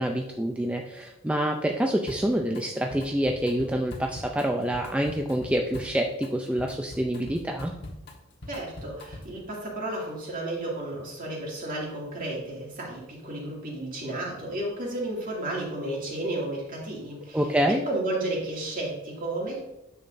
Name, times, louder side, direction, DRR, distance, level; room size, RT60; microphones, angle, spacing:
voice 1, 0.0-7.7 17.3-17.8, right 1 dB, 5° right, 2 dB, 0.4 m, -27 dB
Drum kit, 2.1-2.6 2.9-9.4, left 1 dB, 55° left, 1.3 m, -43 dB
voice 2, 8.5-17.4 17.7-19.6, right 1 dB, 45° right, -3 dB, 2.3 m, -32 dB
9.3 x 6.3 x 2.6 m, 0.93 s
head